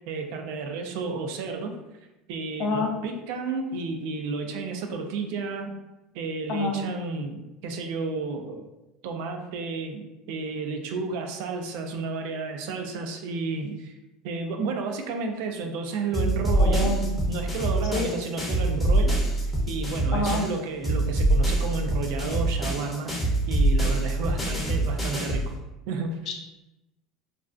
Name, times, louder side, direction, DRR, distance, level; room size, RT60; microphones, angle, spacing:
voice 1, 0.0-1.8 2.3-5.8 6.1-8.6 9.0-13.9 14.2-17.0 17.3-19.3 19.7-25.5 25.9-26.2, right 4 dB, 75° right, 4 dB, 0.3 m, -32 dB
voice 2, 2.6-2.9 6.5-6.8 16.6-17.2 17.9-18.1 20.1-20.4 26.3-26.4, left 3 dB, 55° left, 1 dB, 0.5 m, -27 dB
sound 1, 16.1-20.6 20.8-25.5, right 1 dB, 10° left, 0.6 m, -25 dB
2.4 x 2.1 x 2.4 m, 0.98 s
supercardioid pair, 110°, 0 cm